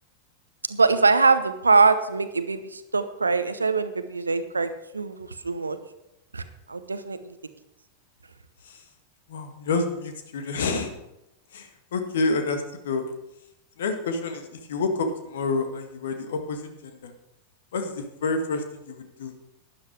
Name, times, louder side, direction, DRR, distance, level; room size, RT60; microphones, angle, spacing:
voice 1, 0.7-5.8 6.3-7.3, right 4 dB, 80° right, 11 dB, 0.8 m, -23 dB
voice 2, 9.3-10.9 11.5-13.1 13.8-17.1 17.7-19.3, left 3 dB, 60° left, 7 dB, 1.7 m, -29 dB
12.0 x 10.0 x 4.7 m, 0.91 s
figure-of-eight pair, 90°, 0 cm